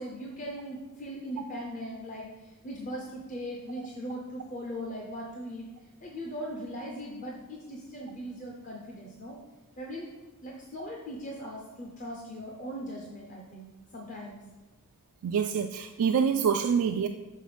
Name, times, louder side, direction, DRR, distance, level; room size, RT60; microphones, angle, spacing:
voice 1, 0.0-5.7 6.0-9.4 9.8-10.1 10.4-14.4, equal, 35° left, -1 dB, 0.7 m, -39 dB
voice 2, 15.2-17.1, right 7 dB, 75° right, 5 dB, 0.3 m, -26 dB
6.7 x 3.9 x 5.0 m, 1.2 s
head